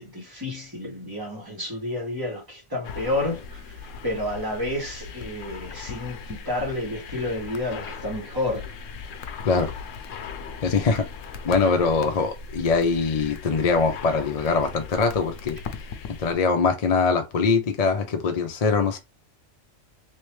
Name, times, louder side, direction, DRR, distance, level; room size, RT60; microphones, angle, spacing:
voice 1, 0.0-8.7, left 1 dB, 15° right, 1.8 m, -30 dB
sound 1, 2.8-16.3, left 6 dB, 75° left, 1.0 m, -38 dB
voice 2, 10.6-11.0 11.4-15.6 16.2-19.0, left 4 dB, 45° left, 0.5 m, -22 dB
3.3 x 3.1 x 3.1 m
omnidirectional pair, 1.3 m